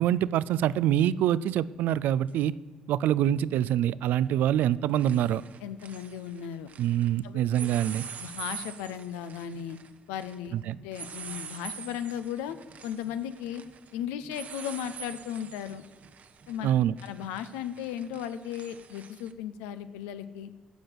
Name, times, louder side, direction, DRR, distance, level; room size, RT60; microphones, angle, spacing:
voice 1, 0.0-2.6 2.9-5.4 6.8-8.1 10.5-10.8 16.6-16.9, right 11 dB, 70° right, 19 dB, 0.3 m, -25 dB
sound 1, 2.3-2.4 4.1-4.4 4.7-7.1 7.5-19.3, right 7 dB, 55° right, 0.8 m, -45 dB
voice 2, 5.6-6.7 7.2-7.4 8.2-9.8 10.1-12.6 12.8-13.6 13.9-15.8 16.5-16.7 17.0-20.5, left 9 dB, 80° left, 11 dB, 0.6 m, -36 dB
13.0 x 5.0 x 7.9 m, 1.4 s
hypercardioid pair, 50°, 3 cm